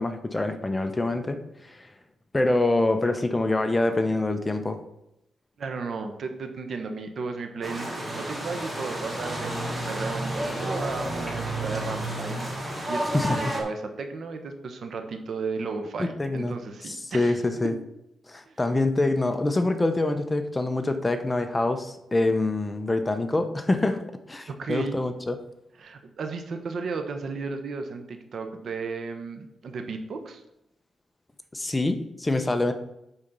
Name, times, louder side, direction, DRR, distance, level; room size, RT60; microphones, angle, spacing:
voice 1, 0.0-1.4 1.7-1.8 2.3-4.8 13.1-13.4 16.0-16.6 16.8-17.7 18.3-24.0 24.3-25.4 31.5-32.7, left 2 dB, 20° left, 8 dB, 0.8 m, -25 dB
voice 2, 5.6-17.4 18.5-18.6 24.5-25.0 25.8-30.4, right 4 dB, 60° right, 7 dB, 1.1 m, -34 dB
sound 1, 7.6-13.6, right 1 dB, 15° right, 2.4 m, -31 dB
8.9 x 4.3 x 5.4 m, 0.85 s
cardioid pair, 95°, 0 cm